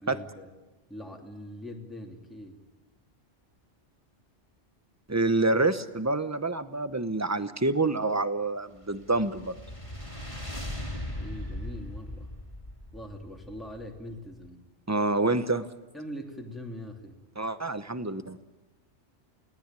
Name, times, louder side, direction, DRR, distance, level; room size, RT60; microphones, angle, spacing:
voice 1, 0.0-0.5 0.9-2.6 11.1-12.3 12.9-14.7 15.9-17.2, equal, ahead, 1 dB, 2.8 m, -42 dB
voice 2, 5.1-9.5 14.9-15.7 17.4-18.4, right 2 dB, 15° right, 12 dB, 0.9 m, -27 dB
sound 1, 8.7-14.2, left 1 dB, 25° left, 3.0 m, -39 dB
29.0 x 18.5 x 9.1 m, 1.2 s
omnidirectional pair, 1.2 m